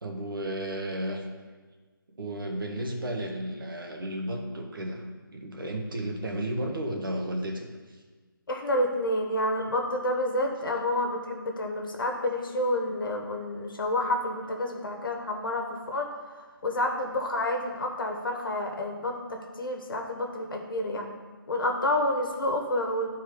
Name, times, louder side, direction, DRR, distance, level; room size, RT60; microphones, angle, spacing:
voice 1, 0.0-1.2 2.1-5.0 5.3-7.7, right 1 dB, 65° right, 2 dB, 1.6 m, -33 dB
voice 2, 8.5-16.1 16.6-21.1 21.5-23.1, left 1 dB, 65° left, 2 dB, 1.5 m, -29 dB
11.0 x 4.5 x 5.1 m, 1.4 s
hypercardioid pair, 175°, 12 cm